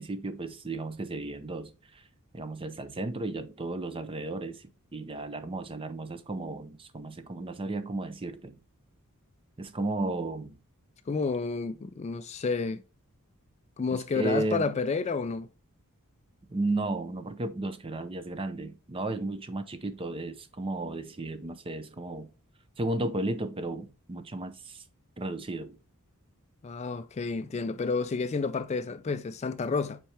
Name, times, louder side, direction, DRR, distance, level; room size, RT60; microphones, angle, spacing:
voice 1, 0.0-2.0 2.3-4.6 4.9-8.6 9.6-10.6 13.9-14.7 16.5-22.3 22.8-24.8 25.2-25.8, right 2 dB, 25° right, 0.6 m, -34 dB
voice 2, 11.1-12.8 13.8-15.5 26.6-30.0, left 4 dB, 30° left, 0.3 m, -30 dB
7.2 x 4.4 x 3.3 m
head